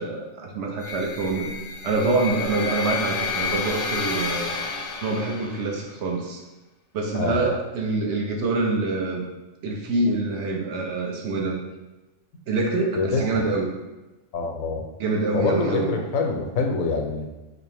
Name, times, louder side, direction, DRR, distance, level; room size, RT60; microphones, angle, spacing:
voice 1, 0.0-1.5 1.8-4.5 5.0-6.4 6.9-9.3 9.6-11.6 12.5-13.7 15.0-15.9, right 3 dB, 65° right, 1 dB, 0.9 m, -25 dB
sound 1, 0.8-5.8, left 4 dB, 55° left, 0.6 m, -30 dB
voice 2, 12.9-13.4 14.3-14.8 15.3-17.3, left 4 dB, 85° left, 2 dB, 1.0 m, -25 dB
3.9 x 2.7 x 3.4 m, 1.1 s
omnidirectional pair, 1.4 m